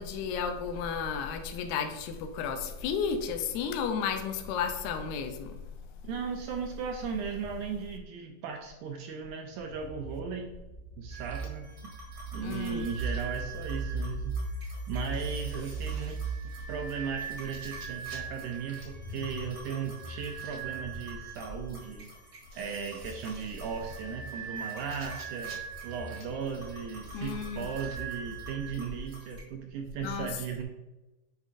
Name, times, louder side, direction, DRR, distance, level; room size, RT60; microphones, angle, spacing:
voice 1, 0.0-5.6 12.4-12.8 27.1-27.7 30.0-30.3, left 6 dB, 80° left, 6 dB, 1.8 m, -33 dB
voice 2, 6.0-10.6 11.0-12.0 12.3-14.4 14.6-16.2 16.4-22.1 22.5-25.6 25.8-30.6, right 6 dB, 80° right, 3 dB, 1.9 m, -37 dB
sound 1, 9.6-21.8 22.8-28.8, right 3 dB, 65° left, 2.0 m, -40 dB
sound 2, 11.1-29.4, right 6 dB, 45° right, 1.4 m, -44 dB
8.2 x 4.8 x 2.5 m, 1.0 s
omnidirectional pair, 3.9 m